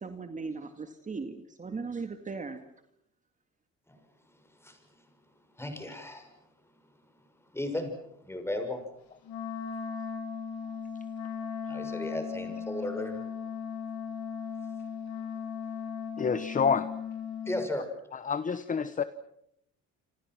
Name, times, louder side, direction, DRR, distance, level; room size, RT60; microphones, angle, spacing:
voice 1, 0.0-2.6, right 4 dB, 25° right, 7 dB, 2.1 m, -38 dB
voice 2, 5.6-6.3 7.5-7.9 8.2-8.8 11.7-13.2 17.5-17.9, left 1 dB, 10° left, 5 dB, 6.3 m, -34 dB
Wind instrument woodwind instrument, 9.2-17.7, left 6 dB, 75° left, 6.3 m, -37 dB
voice 3, 16.2-16.9 18.1-19.0, left 6 dB, 25° left, 13 dB, 1.0 m, -28 dB
28.5 x 26.5 x 6.2 m, 0.76 s
cardioid pair, 125°, 30 cm